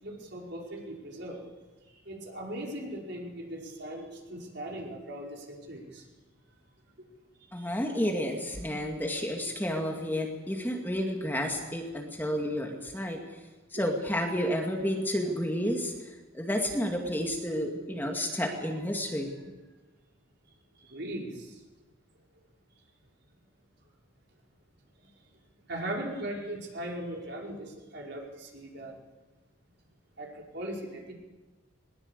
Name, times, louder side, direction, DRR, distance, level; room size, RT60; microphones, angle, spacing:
voice 1, 0.0-1.4 2.0-6.0 7.5-7.7 13.7-13.8 20.8-21.5 25.7-28.9 30.2-31.1, right 1 dB, 55° right, -1 dB, 5.0 m, -39 dB
voice 2, 7.5-13.2 13.7-15.9 16.3-19.3, equal, 10° left, 2 dB, 2.3 m, -31 dB
21.0 x 20.5 x 8.2 m, 1.2 s
head